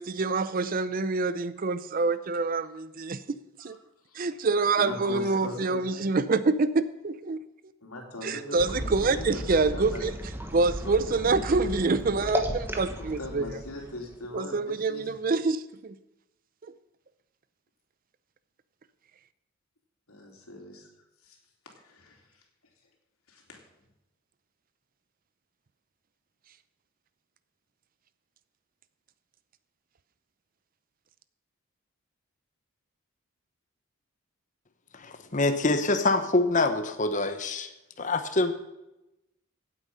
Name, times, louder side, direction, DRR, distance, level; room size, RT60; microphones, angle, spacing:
voice 1, 0.0-3.8 4.1-7.4 8.2-10.1 10.5-13.6 14.3-16.0 16.6-16.7, right 3 dB, 40° right, 0.5 m, -26 dB
voice 2, 4.8-6.0 7.8-10.0 10.8-11.3 13.0-15.2 20.1-20.9 21.2-21.4 21.8-22.4 23.3-23.6, left 1 dB, 85° left, 3.2 m, -40 dB
sound 1, 8.6-14.4, equal, 10° right, 1.2 m, -35 dB
voice 3, 34.9-37.7 38.0-38.5, left 2 dB, 35° left, 1.0 m, -25 dB
16.5 x 8.4 x 5.6 m
head